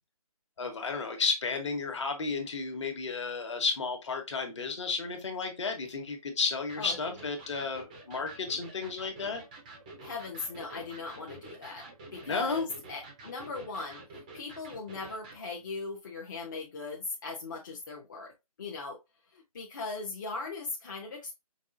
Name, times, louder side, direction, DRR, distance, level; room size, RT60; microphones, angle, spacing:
voice 1, 0.6-9.4 12.3-12.7, left 4 dB, 50° left, 4 dB, 1.1 m, -32 dB
Electric guitar, 6.7-15.4, right 2 dB, 10° right, 0.5 m, -49 dB
voice 2, 10.0-11.9 12.1-14.0 14.3-18.3 18.6-19.0 19.3-21.3, left 3 dB, 30° left, -1 dB, 0.7 m, -39 dB
5.2 x 2.3 x 2.5 m, 0.22 s
figure-of-eight pair, 160°, 19 cm